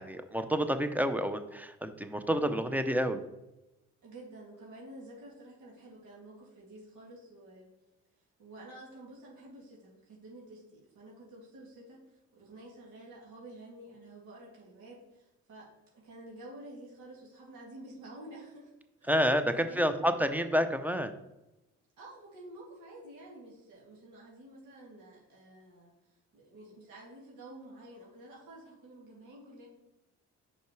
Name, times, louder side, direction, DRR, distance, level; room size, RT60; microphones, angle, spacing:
voice 1, 0.0-3.2 19.1-21.1, equal, 5° right, 9 dB, 0.6 m, -29 dB
voice 2, 4.0-7.7 8.4-18.7 19.0-19.2 19.6-20.2 22.0-25.9 26.3-29.7, right 1 dB, 80° right, -4 dB, 2.2 m, -50 dB
5.3 x 4.8 x 4.7 m, 0.95 s
cardioid pair, 90°, 30 cm